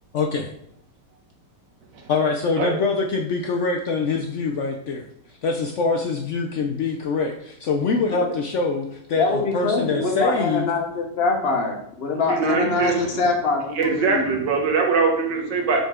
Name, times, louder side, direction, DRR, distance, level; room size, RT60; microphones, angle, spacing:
voice 1, 2.1-5.1 5.4-10.7, left 4 dB, 75° left, 3 dB, 0.6 m, -24 dB
voice 2, 9.2-14.4, left 3 dB, 40° left, 2 dB, 1.1 m, -24 dB
voice 3, 12.3-13.1 13.8-15.8, right 4 dB, 85° right, 1 dB, 1.9 m, -22 dB
7.0 x 4.1 x 3.6 m, 0.73 s
omnidirectional pair, 1.9 m